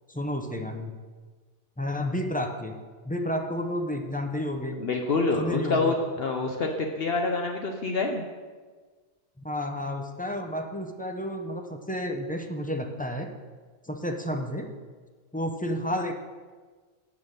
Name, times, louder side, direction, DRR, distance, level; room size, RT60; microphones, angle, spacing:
voice 1, 0.1-0.9 1.8-2.8 3.0-4.8 5.4-5.9 9.4-13.3 13.8-14.7 15.3-16.1, left 1 dB, 15° left, 3 dB, 0.4 m, -31 dB
voice 2, 4.8-8.2, left 3 dB, 60° left, 3 dB, 0.9 m, -27 dB
7.3 x 5.8 x 6.5 m, 1.4 s
omnidirectional pair, 1.2 m